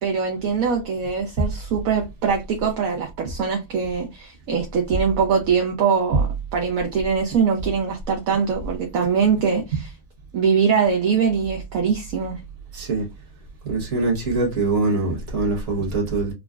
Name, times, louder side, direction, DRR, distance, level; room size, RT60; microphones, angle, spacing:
voice 1, 0.0-6.2 6.5-9.9 10.3-12.4, right 6 dB, 70° right, 1.0 m, -22 dB
voice 2, 12.7-13.1 13.6-16.3, right 3 dB, 50° right, 1.4 m, -23 dB
3.7 x 2.1 x 2.2 m
omnidirectional pair, 1.7 m